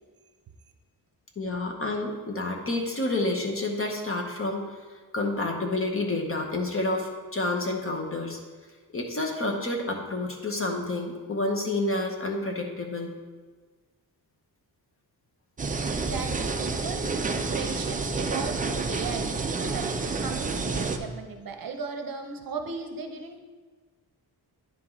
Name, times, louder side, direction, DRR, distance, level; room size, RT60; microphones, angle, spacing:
voice 1, 1.4-4.7 5.1-8.4 8.9-13.1, left 2 dB, 35° left, 2 dB, 0.8 m, -29 dB
sound 1, 15.6-21.0, right 4 dB, 20° right, 0.3 m, -29 dB
voice 2, 15.9-23.4, right 4 dB, 55° right, 4 dB, 0.7 m, -36 dB
10.0 x 4.6 x 3.7 m, 1.4 s
wide cardioid pair, 175°, 41 cm